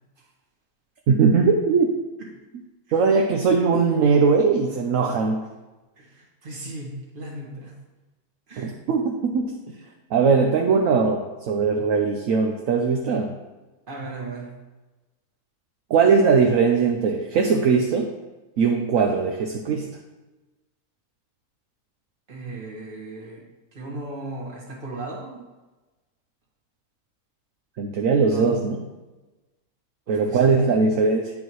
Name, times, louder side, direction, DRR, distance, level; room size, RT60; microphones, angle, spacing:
voice 1, 1.1-1.9 2.9-5.4 8.6-9.6 10.1-13.3 15.9-18.1 18.6-19.9 27.8-28.8 30.1-31.3, right 5 dB, 65° right, 3 dB, 1.0 m, -20 dB
voice 2, 6.0-7.7 8.5-8.7 13.9-14.5 22.3-23.4 23.7-25.4 28.3-28.6 30.1-30.6, right 2 dB, 35° right, -3 dB, 1.6 m, -36 dB
9.5 x 5.4 x 3.0 m, 1.1 s
omnidirectional pair, 1.6 m